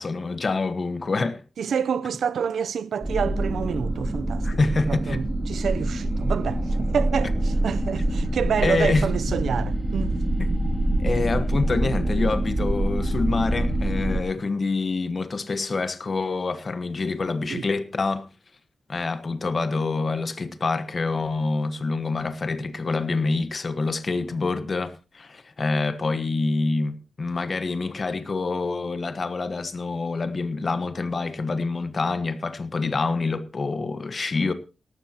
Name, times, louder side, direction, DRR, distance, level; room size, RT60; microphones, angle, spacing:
voice 1, 0.0-1.4 4.4-5.2 8.6-9.0 10.4-10.5 11.0-18.3 18.9-34.5, left 3 dB, 35° left, 1.3 m, -26 dB
voice 2, 1.6-4.5 4.9-10.2 17.5-17.6, right 7 dB, 75° right, 0.6 m, -28 dB
sound 1, 3.0-14.2, right 1 dB, 15° right, 2.2 m, -25 dB
18.5 x 13.5 x 2.9 m
wide cardioid pair, 175°, 0 cm